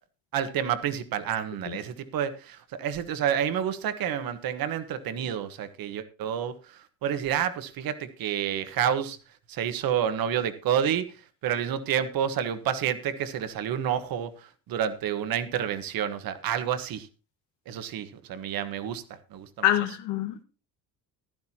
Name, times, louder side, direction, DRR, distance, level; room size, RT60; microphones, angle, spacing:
voice 1, 0.3-9.2 9.5-11.2 11.4-17.1 17.7-19.0 19.3-19.5, right 9 dB, 60° right, 1.5 m, -29 dB
voice 2, 19.6-20.4, left 12 dB, 90° left, 1.8 m, -25 dB
15.5 x 12.0 x 2.9 m
cardioid pair, 125°, 40 cm